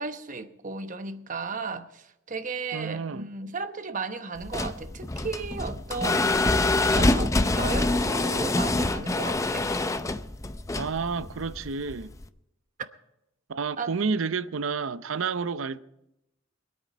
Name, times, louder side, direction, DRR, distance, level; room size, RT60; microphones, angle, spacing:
voice 1, 0.0-6.6 6.8-9.7 13.8-14.4, right 4 dB, 40° right, 0.9 m, -35 dB
voice 2, 2.7-3.2 10.8-12.1 13.5-15.8, right 5 dB, 80° right, 0.6 m, -30 dB
sound 1, 4.4-12.3, left 2 dB, 15° left, 0.5 m, -26 dB
23.5 x 8.8 x 5.1 m
head